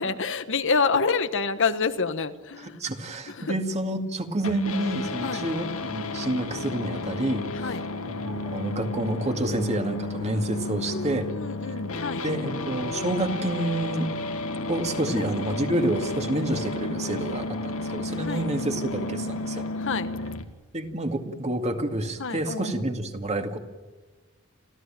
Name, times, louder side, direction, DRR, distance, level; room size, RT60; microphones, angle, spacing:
voice 1, 0.0-2.8 3.3-3.5 5.2-5.5 7.5-7.8 10.9-12.2 15.2-15.3 16.8-17.3 18.3-18.4 19.8-20.1 22.2-23.0, left 5 dB, 60° left, 10 dB, 1.3 m, -28 dB
voice 2, 2.8-7.5 8.0-11.3 12.2-14.1 14.7-19.7 20.7-23.6, right 1 dB, 30° right, 5 dB, 2.3 m, -28 dB
sound 1, 4.4-20.4, left 2 dB, 80° left, 2.0 m, -32 dB
29.0 x 14.5 x 9.0 m, 1.3 s
head